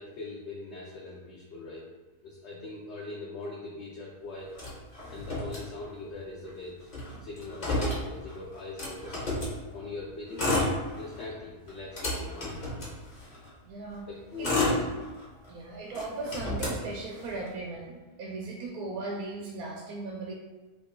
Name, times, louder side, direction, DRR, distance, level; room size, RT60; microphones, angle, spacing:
voice 1, 0.0-1.9 2.2-4.5 5.1-6.9 7.2-9.4 9.7-10.5 11.0-12.6 14.1-14.8, left 2 dB, 65° left, -4 dB, 0.7 m, -41 dB
Motor vehicle (road), 4.5-6.2 6.5-6.6 6.8-9.6 10.2-11.3 11.7-13.5 14.1-15.5 15.9-17.5, left 2 dB, 35° left, 0.9 m, -31 dB
sound 1, 9.4-13.7, right 1 dB, 70° right, 0.9 m, -42 dB
voice 2, 13.7-14.1 14.4-14.5 15.3-20.3, right 3 dB, 90° right, -1 dB, 1.1 m, -38 dB
3.0 x 2.6 x 3.6 m, 1.2 s
omnidirectional pair, 1.6 m